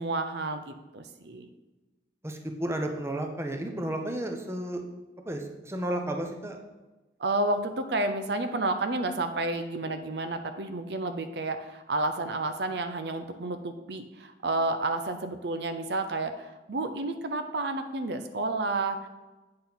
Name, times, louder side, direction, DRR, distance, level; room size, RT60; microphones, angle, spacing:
voice 1, 0.0-1.5 7.2-19.1, right 2 dB, 70° right, 8 dB, 0.6 m, -31 dB
voice 2, 2.2-4.8 5.2-6.6, right 1 dB, 15° right, 3 dB, 0.8 m, -32 dB
8.6 x 6.3 x 4.0 m, 1.1 s
head